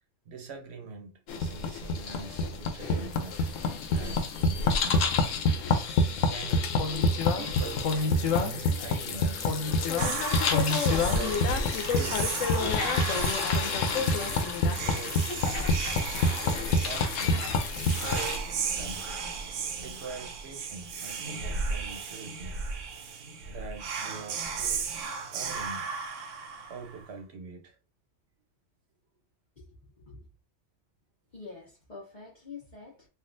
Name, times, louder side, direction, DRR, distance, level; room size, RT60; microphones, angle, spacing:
voice 1, 0.3-3.5 3.9-5.0 6.3-6.8 7.4-9.6 11.0-14.3 14.6-15.2 16.2-17.4 17.9-19.1 19.8-22.6 23.5-24.9 25.3-25.9 26.5-27.8, right 4 dB, 60° right, 1.0 m, -43 dB
sound 1, 1.3-18.4, left 3 dB, 90° left, 1.0 m, -27 dB
Whispering, 10.0-27.1, right 5 dB, 80° right, 1.0 m, -35 dB
sound 2, 11.1-14.3 15.2-17.7 18.0-18.2, left 1 dB, 60° left, 1.1 m, -41 dB
voice 2, 31.3-33.1, left 4 dB, 40° left, 1.0 m, -46 dB
3.4 x 2.4 x 2.5 m
omnidirectional pair, 1.3 m